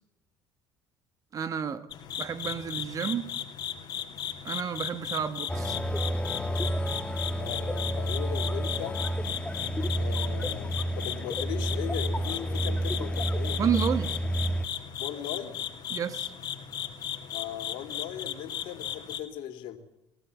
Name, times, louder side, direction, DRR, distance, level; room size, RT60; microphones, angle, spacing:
voice 1, 1.3-1.9 2.2-3.3 4.4-5.8 13.6-14.2 15.9-16.3, right 7 dB, 40° right, 1.5 m, -30 dB
sound 1, 1.9-19.2, left 9 dB, 50° left, 2.7 m, -36 dB
sound 2, 5.5-14.7, right 1 dB, 10° left, 1.3 m, -30 dB
voice 2, 7.4-9.0 9.9-13.6 15.0-15.5 17.3-19.8, left 10 dB, 70° left, 3.1 m, -38 dB
22.5 x 16.5 x 8.3 m
supercardioid pair, 95°, 9 cm